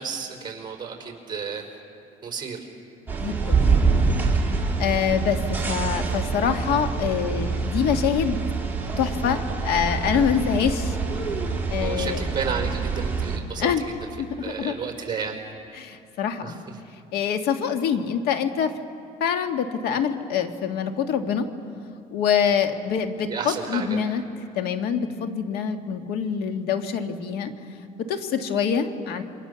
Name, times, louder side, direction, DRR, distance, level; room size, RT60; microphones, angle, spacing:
voice 1, 0.0-1.6 2.2-2.6 11.8-13.9 14.4-15.4 16.4-16.6 23.3-24.0, right 6 dB, 25° right, 2 dB, 4.7 m, -32 dB
voice 2, 3.1-4.1 4.8-8.4 9.0-11.0 11.7-12.2 13.6-13.8 14.2-14.8 15.7-16.6 17.1-18.8 19.2-21.5 22.1-24.2 24.6-27.5 28.0-29.2, left 7 dB, 75° left, 6 dB, 1.8 m, -25 dB
sound 1, 3.1-13.4, right 4 dB, 10° right, 3.6 m, -25 dB
28.5 x 24.5 x 7.0 m, 2.6 s
cardioid pair, 120°, 16 cm